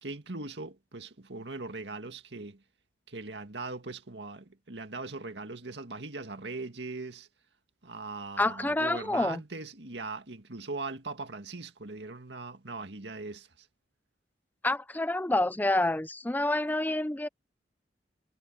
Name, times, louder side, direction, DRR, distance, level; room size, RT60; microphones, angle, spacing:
voice 1, 0.0-2.6 3.1-7.3 7.8-13.7, right 3 dB, 80° right, 2.0 m, -40 dB
voice 2, 8.4-9.4 14.6-17.3, left 2 dB, 10° left, 0.5 m, -28 dB
head